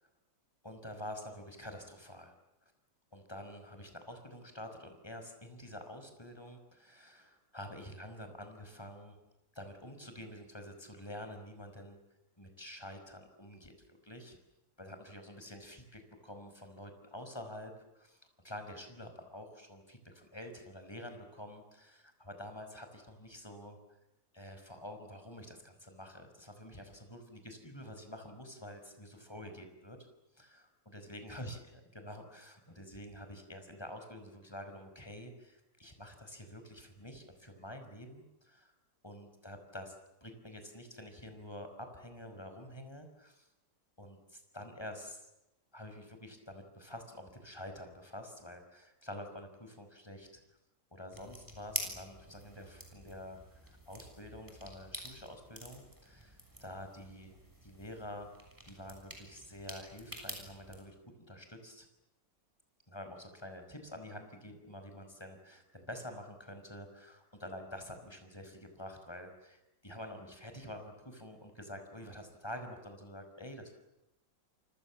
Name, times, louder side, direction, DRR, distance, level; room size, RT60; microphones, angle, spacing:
voice 1, 0.6-2.3 3.1-9.2 9.5-12.0 12.4-14.4 14.8-23.8 24.3-30.0 30.3-31.6 31.9-38.7 39.0-39.9 40.2-43.5 44.0-45.3 45.7-50.4 50.9-58.3 58.6-61.9 62.9-73.7, left 1 dB, 15° left, 6 dB, 5.4 m, -48 dB
sound 1, 51.1-60.8, equal, 10° right, 6.7 m, -47 dB
29.0 x 26.0 x 7.4 m, 0.91 s
omnidirectional pair, 2.0 m